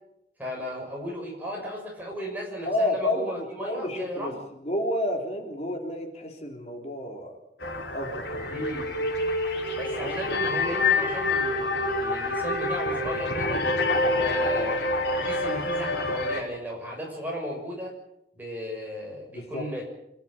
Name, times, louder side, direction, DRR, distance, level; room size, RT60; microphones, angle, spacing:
voice 1, 0.4-4.4 8.5-8.9 9.7-13.6 14.2-17.9 18.3-19.9, equal, 10° right, -1 dB, 6.6 m, -35 dB
voice 2, 2.7-4.4 4.6-7.3 7.9-8.7 10.0-10.2 19.3-19.7, left 1 dB, 40° left, 3 dB, 3.4 m, -30 dB
sound 1, 7.6-16.4, left 2 dB, 75° left, 4.9 m, -27 dB
26.5 x 13.0 x 8.9 m, 0.81 s
head